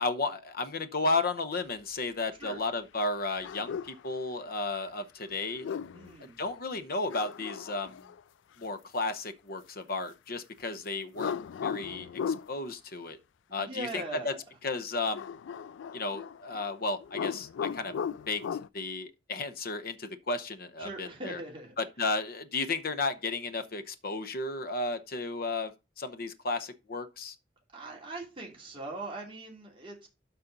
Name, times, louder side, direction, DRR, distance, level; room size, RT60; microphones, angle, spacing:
voice 1, 0.0-5.7 6.4-7.9 8.6-11.3 11.6-13.2 13.5-14.3 14.6-15.2 15.9-17.9 18.3-18.4 18.7-21.4 21.8-25.7 26.0-27.3, left 3 dB, 55° left, 0.8 m, -33 dB
sound 1, 3.4-4.0 5.4-6.1 7.1-8.2 11.1-12.5 15.1-16.7 17.0-18.7, left 7 dB, 75° left, 0.3 m, -36 dB
voice 2, 5.9-6.4 13.5-14.4 20.8-21.7 27.7-30.1, right 2 dB, 30° right, 2.9 m, -41 dB
12.5 x 4.3 x 4.0 m
head